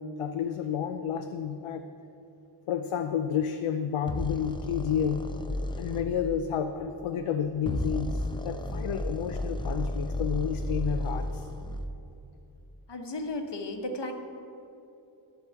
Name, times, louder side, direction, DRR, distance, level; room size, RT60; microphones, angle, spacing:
voice 1, 0.0-1.8 2.7-5.2 5.8-11.5, left 8 dB, 90° left, 7 dB, 0.6 m, -30 dB
sound 1, 4.1-6.1 7.5-11.9, left 1 dB, 10° left, 0.6 m, -33 dB
voice 2, 12.9-14.1, left 2 dB, 55° left, 5 dB, 1.1 m, -34 dB
11.0 x 4.9 x 7.9 m, 2.9 s
wide cardioid pair, 55°, 49 cm